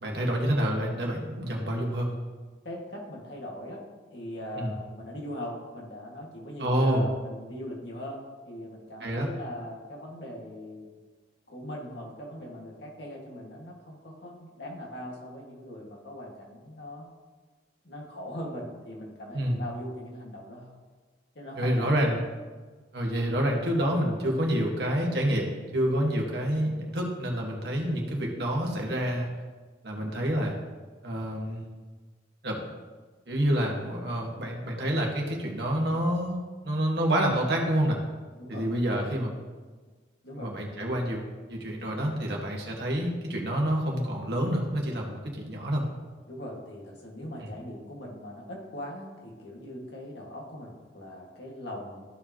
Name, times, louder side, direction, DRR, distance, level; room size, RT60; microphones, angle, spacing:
voice 1, 0.0-2.1 4.6-4.7 6.6-7.0 9.0-9.3 19.3-19.6 21.6-22.2 22.9-29.3 29.8-30.5 31.0-31.6 32.4-32.7 33.3-36.4 36.6-38.0 38.5-39.3 40.4-41.2 41.5-45.8 47.4-47.5, equal, 65° right, -1 dB, 1.7 m, -28 dB
voice 2, 2.6-3.8 4.1-10.9 11.5-17.1 17.8-20.7 21.3-22.0 38.3-39.1 40.2-40.9 46.3-52.0, equal, 75° left, -2 dB, 2.0 m, -40 dB
14.5 x 4.9 x 3.0 m, 1.4 s
head